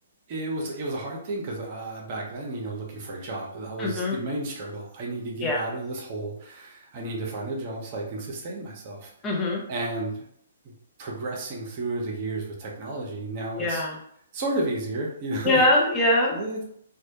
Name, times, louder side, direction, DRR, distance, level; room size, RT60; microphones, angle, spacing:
voice 1, 0.3-9.1 9.7-10.2 10.6-10.7 11.0-13.8 14.3-15.6 16.3-16.6, right 2 dB, 40° right, -1 dB, 0.7 m, -32 dB
voice 2, 3.8-4.1 5.4-5.6 9.2-9.6 13.6-14.0 15.4-16.4, left 1 dB, 15° left, -3 dB, 0.6 m, -22 dB
2.2 x 2.0 x 2.8 m, 0.68 s
figure-of-eight pair, 125°, 0 cm